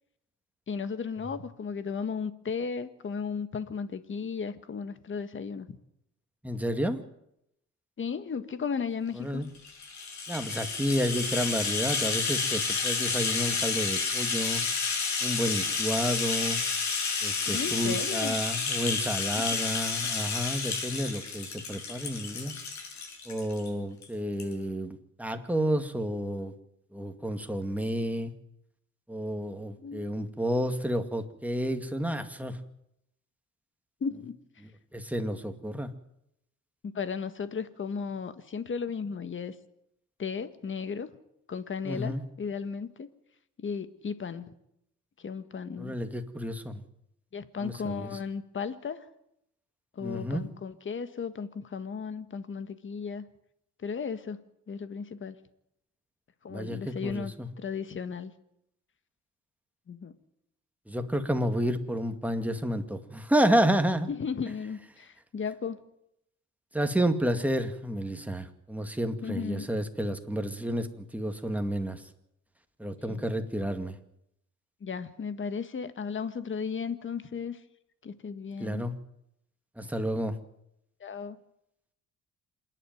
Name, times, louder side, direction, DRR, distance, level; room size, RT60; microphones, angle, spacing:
voice 1, 0.7-5.7 8.0-9.5 17.5-18.4 19.4-19.6 29.8-30.1 34.0-34.4 36.8-39.5 40.2-41.1 41.5-43.1 43.6-44.5 45.2-46.0 47.3-49.1 49.9-53.2 53.8-54.4 54.7-55.4 56.4-58.3 59.9-60.1 64.1-65.8 69.2-69.7 73.0-73.2 74.8-77.6 78.0-78.9 81.0-81.4, left 6 dB, 40° left, 12 dB, 1.7 m, -35 dB
voice 2, 6.4-7.0 9.2-9.5 10.3-14.6 15.2-16.6 17.2-22.6 23.3-26.5 26.9-28.3 29.1-32.6 34.6-35.9 41.8-42.2 45.8-46.8 47.6-48.1 50.0-50.5 56.5-57.5 60.9-64.1 66.7-72.0 72.8-74.0 78.6-78.9 79.8-80.3, equal, 5° right, 6 dB, 2.2 m, -30 dB
Rattle (instrument), 9.6-23.7 24.0-24.1 24.4-24.5, left 4 dB, 65° left, 6.5 m, -30 dB
27.5 x 11.0 x 9.3 m, 0.79 s
cardioid pair, 90°, 30 cm